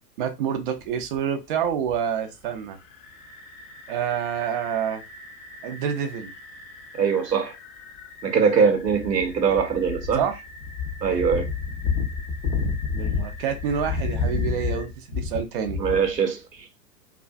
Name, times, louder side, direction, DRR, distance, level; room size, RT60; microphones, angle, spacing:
voice 1, 0.2-2.8 3.9-5.0 5.6-6.3 10.1-10.4 12.9-15.8, right 8 dB, 35° right, 0.4 m, -27 dB
sound 1, 0.8-1.2 1.7-1.9 2.9-16.2, left 5 dB, 40° left, 0.6 m, -32 dB
voice 2, 7.0-7.5 8.2-10.2 11.0-11.5 15.8-16.4, right 6 dB, 90° right, 0.7 m, -21 dB
2.4 x 2.3 x 2.4 m
figure-of-eight pair, 100°, 48 cm